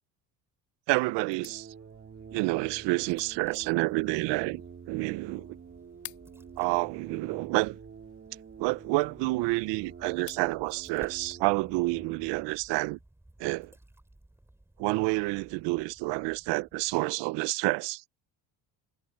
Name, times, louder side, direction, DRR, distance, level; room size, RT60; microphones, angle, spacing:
voice 1, 0.9-1.7 2.3-5.6 6.6-7.8 8.6-13.0 13.4-13.7 14.8-18.0, right 22 dB, 90° right, 0.7 m, -29 dB
sound 1, 1.2-12.5, right 6 dB, 30° right, 3.5 m, -48 dB
sound 2, 1.3-10.6, left 15 dB, 70° left, 3.0 m, -55 dB
sound 3, 1.5-17.2, right 1 dB, 5° right, 3.4 m, -58 dB
cardioid pair, 140°, 41 cm